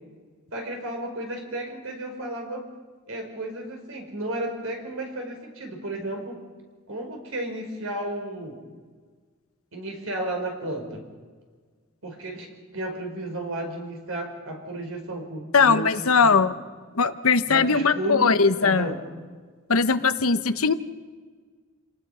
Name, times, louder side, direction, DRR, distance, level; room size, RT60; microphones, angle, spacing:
voice 1, 0.5-2.6 3.1-6.4 6.9-8.6 9.7-11.0 12.0-16.4 17.5-18.3 18.6-19.0, right 1 dB, 75° right, 2 dB, 4.8 m, -33 dB
voice 2, 15.5-16.5 16.9-18.9 19.7-20.7, left 5 dB, 80° left, 11 dB, 1.0 m, -20 dB
28.0 x 19.0 x 5.7 m, 1.5 s
head